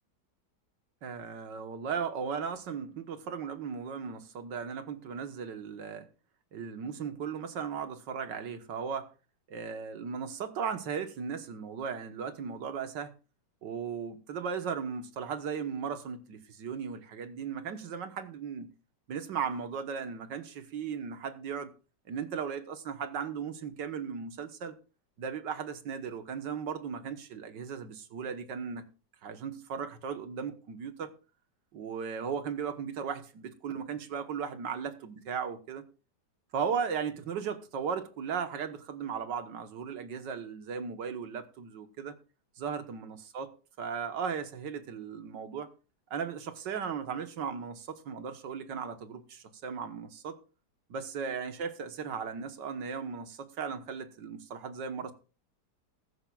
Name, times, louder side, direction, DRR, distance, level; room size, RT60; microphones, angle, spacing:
voice 1, 1.0-6.1 6.5-9.1 9.5-13.1 13.6-18.7 19.1-21.7 22.1-24.7 25.2-28.9 29.2-31.1 31.7-35.8 36.5-42.2 42.6-43.5 43.8-45.7 46.1-50.4 50.9-55.1, right 6 dB, 85° right, 1.9 m, -36 dB
15.5 x 15.0 x 2.4 m
omnidirectional pair, 1.9 m